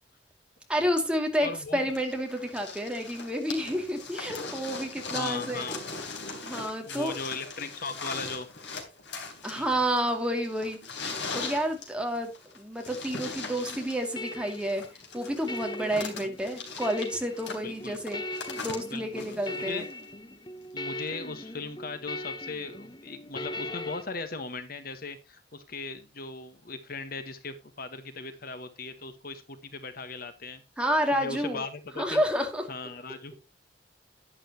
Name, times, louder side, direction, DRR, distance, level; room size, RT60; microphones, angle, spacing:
voice 1, 0.7-5.6 6.4-7.2 9.4-14.8 15.1-18.2 18.6-19.8 30.8-31.6 32.0-32.6, equal, 5° right, 3 dB, 2.4 m, -30 dB
voice 2, 1.4-1.8 5.1-5.8 6.8-8.5 9.6-9.8 17.6-18.0 18.9-19.9 20.7-30.6 31.1-32.2 32.7-33.4, left 3 dB, 55° left, 9 dB, 1.3 m, -38 dB
sound 1, 2.0-20.0 21.1-21.2, left 4 dB, 75° left, 3.7 m, -40 dB
sound 2, 13.6-24.0, left 1 dB, 25° left, 0.9 m, -40 dB
11.5 x 10.5 x 2.9 m, 0.27 s
head